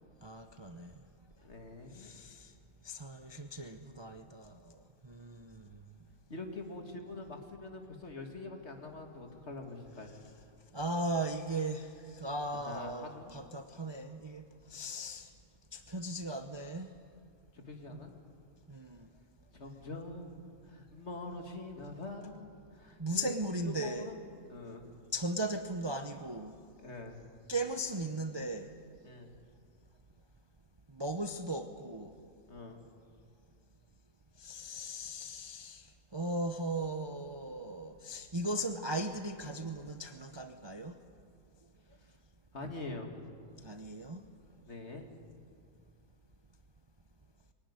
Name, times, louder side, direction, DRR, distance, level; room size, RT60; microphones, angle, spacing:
voice 1, 0.2-0.9 1.9-2.5 2.8-5.7 10.7-14.4 14.7-15.3 15.7-16.9 17.9-18.0 18.7-19.1 23.0-24.1 25.1-26.5 27.5-28.7 30.9-32.1 34.4-35.9 36.1-41.0 43.6-44.2, right 1 dB, 25° right, 7 dB, 0.7 m, -37 dB
voice 2, 1.4-2.1 6.3-10.3 12.7-13.5 17.7-18.1 19.5-24.2 24.5-24.9 26.8-27.3 29.0-29.3 32.5-32.8 42.5-43.2 44.7-45.1, left 2 dB, 50° left, 4 dB, 2.4 m, -44 dB
22.5 x 16.5 x 9.6 m, 2.3 s
omnidirectional pair, 1.5 m